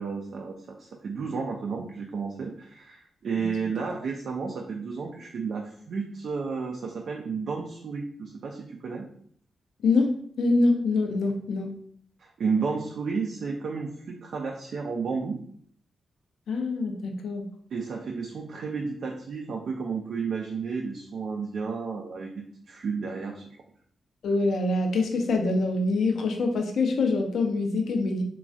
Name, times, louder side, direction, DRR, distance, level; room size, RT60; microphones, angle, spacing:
voice 1, 0.0-9.1 12.2-15.4 17.7-23.6, right 5 dB, 70° right, 1 dB, 0.3 m, -32 dB
voice 2, 10.4-11.7 16.5-17.5 24.2-28.2, left 3 dB, 70° left, 3 dB, 0.5 m, -25 dB
3.1 x 2.3 x 2.5 m, 0.62 s
hypercardioid pair, 40°, 0 cm